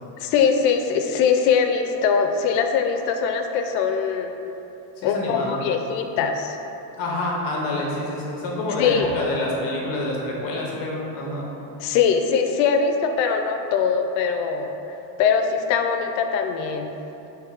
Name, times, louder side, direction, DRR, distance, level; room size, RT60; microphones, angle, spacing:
voice 1, 0.2-4.3 5.0-6.6 8.8-9.1 11.8-14.8 15.2-16.9, left 6 dB, 80° left, 6 dB, 0.6 m, -22 dB
voice 2, 5.0-5.6 7.0-11.5, left 1 dB, 45° left, -3 dB, 0.8 m, -27 dB
3.3 x 3.3 x 4.8 m, 3.0 s
cardioid pair, 170°, 50 cm